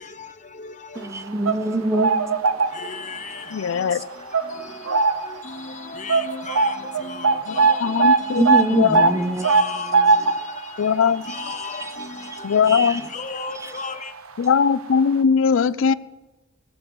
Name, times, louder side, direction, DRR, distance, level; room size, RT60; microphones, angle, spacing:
voice 1, 0.0-1.1 2.6-14.1, left 5 dB, 35° left, 0.8 m, -36 dB
voice 2, 1.0-2.6 3.9-4.0 8.4-9.6 9.9-10.0 11.3-11.9 12.6-13.0 13.6-13.7 15.6-15.9, right 2 dB, 15° right, 0.5 m, -26 dB
sound 1, 1.2-3.2 3.6-3.8 4.3-5.4 5.7-5.8 6.1-13.1 13.4-13.6 14.5-14.6 14.9-15.0, right 4 dB, 75° right, 0.8 m, -21 dB
voice 3, 3.5-4.0 7.5-7.6 7.8-8.4 8.7-9.1 10.8-11.3 12.4-13.0 14.4-15.9, left 6 dB, 60° left, 0.4 m, -19 dB
17.5 x 7.6 x 6.1 m
head